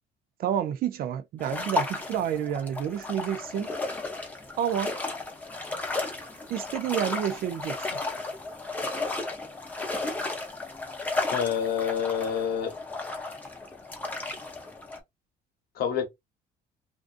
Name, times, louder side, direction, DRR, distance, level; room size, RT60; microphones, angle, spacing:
voice 1, 0.4-3.7 4.6-4.9 6.5-8.0, right 9 dB, 60° right, 0.4 m, -29 dB
sound 1, 1.4-15.0, left 3 dB, 10° left, 0.7 m, -34 dB
voice 2, 11.3-12.8 15.7-16.1, left 8 dB, 65° left, 0.9 m, -27 dB
2.5 x 2.3 x 2.4 m
cardioid pair, 110°, 17 cm